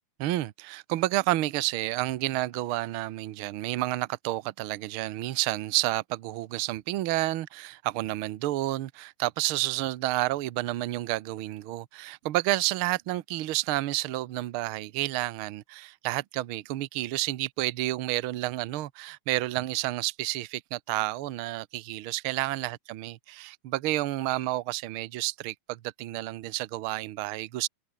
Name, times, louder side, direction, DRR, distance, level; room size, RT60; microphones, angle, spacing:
voice 1, 0.2-27.7, right 17 dB, 75° right, 1.2 m, -30 dB
omnidirectional pair, 3.5 m